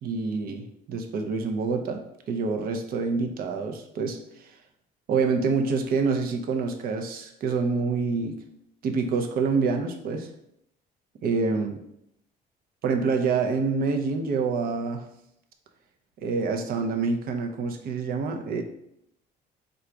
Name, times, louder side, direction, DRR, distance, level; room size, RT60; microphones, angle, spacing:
voice 1, 0.0-2.0 2.3-4.2 5.1-8.4 8.8-10.3 11.2-11.8 12.8-15.0 16.2-18.6, right 4 dB, 60° right, 4 dB, 0.6 m, -26 dB
3.9 x 2.3 x 4.5 m, 0.76 s
cardioid pair, 110°, 17 cm